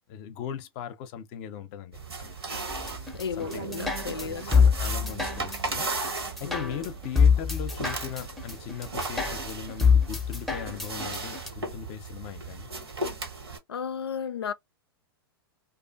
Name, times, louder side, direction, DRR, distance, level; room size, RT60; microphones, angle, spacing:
voice 1, 0.1-2.4 3.4-3.7 4.2-5.9 6.4-12.7, left 8 dB, 40° left, 0.6 m, -39 dB
sound 1, 1.9-13.6, right 3 dB, 80° right, 1.3 m, -36 dB
sound 2, 2.7-11.5, left 6 dB, ahead, 0.6 m, -25 dB
voice 2, 3.1-4.7 6.4-6.9 13.7-14.5, left 7 dB, 80° left, 0.4 m, -34 dB
sound 3, 3.4-8.3, right 8 dB, 60° right, 0.6 m, -45 dB
2.5 x 2.5 x 2.4 m
figure-of-eight pair, 100°, 13 cm